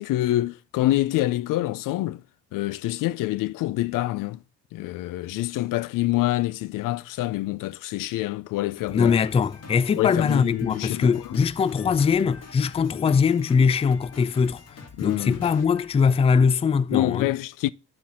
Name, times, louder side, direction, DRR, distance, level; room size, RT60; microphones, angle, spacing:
voice 1, 0.0-2.2 2.5-4.4 4.7-9.1 10.0-11.4 15.0-15.4 16.9-17.7, left 16 dB, 85° left, 0.5 m, -26 dB
Drum kit, 8.8-16.6, left 4 dB, 50° left, 2.0 m, -46 dB
voice 2, 8.9-14.6 15.0-17.3, left 6 dB, 20° left, 0.3 m, -21 dB
11.5 x 4.4 x 3.6 m
cardioid pair, 100°, 32 cm